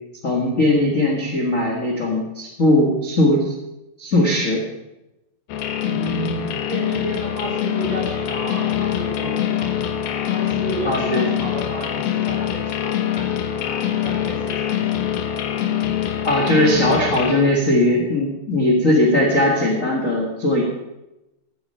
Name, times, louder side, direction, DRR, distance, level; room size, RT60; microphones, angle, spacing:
voice 1, 0.2-3.5 4.0-4.6 10.8-11.3 16.2-20.6, left 1 dB, 35° left, -1 dB, 1.2 m, -19 dB
sound 1, 5.5-17.3, left 10 dB, 75° left, 2.9 m, -24 dB
voice 2, 5.8-9.9 10.3-13.3 13.6-15.0, right 2 dB, 45° right, -4 dB, 4.9 m, -32 dB
16.0 x 8.9 x 5.6 m, 0.95 s
omnidirectional pair, 4.4 m